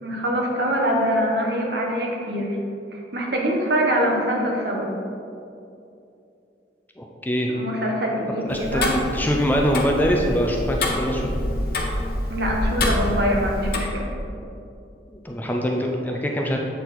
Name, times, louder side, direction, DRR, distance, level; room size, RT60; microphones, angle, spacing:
voice 1, 0.0-2.6 2.9-4.9 7.5-8.9 12.3-14.1, equal, 60° right, -1 dB, 1.1 m, -24 dB
voice 2, 7.0-7.5 8.5-11.4 15.2-16.6, equal, 10° left, 0 dB, 0.5 m, -23 dB
Tick-tock, 8.5-13.8, left 1 dB, 55° left, 0.9 m, -26 dB
7.9 x 4.4 x 4.1 m, 2.7 s
head